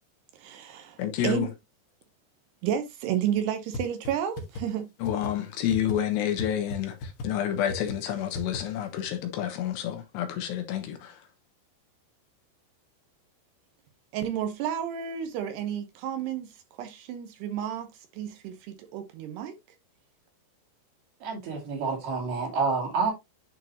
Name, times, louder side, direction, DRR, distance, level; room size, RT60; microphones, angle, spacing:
voice 1, 0.4-1.5 2.6-4.9 14.1-19.6, right 9 dB, 75° right, 2.8 m, -31 dB
voice 2, 1.0-1.5 5.0-11.2, left 10 dB, 75° left, 3.2 m, -29 dB
sound 1, 3.7-3.8 4.1-4.2 4.4-4.6 5.0-5.3 5.7-5.9 6.4-6.5 6.7-6.8 7.0-7.3 7.7-7.9 8.3-8.6, left 2 dB, 60° left, 2.7 m, -34 dB
voice 3, 21.2-23.1, right 4 dB, 60° right, 4.2 m, -28 dB
10.5 x 4.6 x 2.8 m
omnidirectional pair, 5.1 m